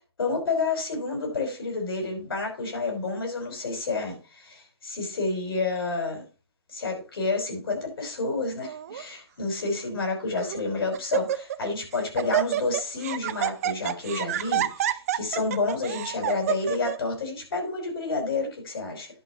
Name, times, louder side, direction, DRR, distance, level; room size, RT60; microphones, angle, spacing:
voice 1, 0.2-6.2 6.7-19.1, left 3 dB, 60° left, 5.5 m, -29 dB
Laughter, 8.6-9.0 9.8-9.9 10.4-10.6 10.9-11.7 11.9-17.0, right 11 dB, 35° right, 0.6 m, -28 dB
11.0 x 5.4 x 5.9 m
hypercardioid pair, 145°, 14 cm